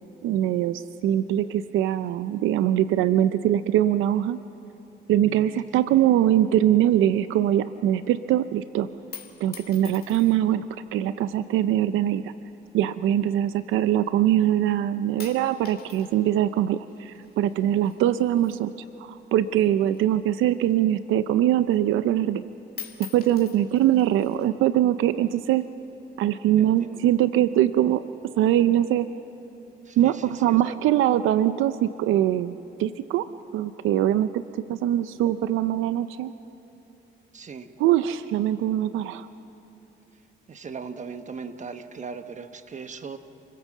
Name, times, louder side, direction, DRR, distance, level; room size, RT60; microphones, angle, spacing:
voice 1, 0.2-4.4 5.1-8.9 9.4-12.3 12.7-18.7 19.0-22.4 23.0-25.8 26.2-28.1 28.4-29.1 30.0-32.5 32.8-33.3 33.5-34.4 34.7-36.3 37.8-39.3, right 12 dB, 90° right, 13 dB, 0.5 m, -22 dB
voice 2, 5.2-5.6 26.6-27.1 29.8-30.8 37.3-37.7 40.5-43.2, right 5 dB, 40° right, 9 dB, 1.3 m, -39 dB
sound 1, 9.0-10.6 11.4-11.9 12.7-14.1 14.4-14.8 15.2-19.3 19.5-21.2 21.6-21.7 22.0-22.4 22.7-24.5 25.3-25.9, left 7 dB, 50° left, 2.3 m, -46 dB
28.5 x 16.5 x 7.4 m, 2.9 s
cardioid pair, 90°, 20 cm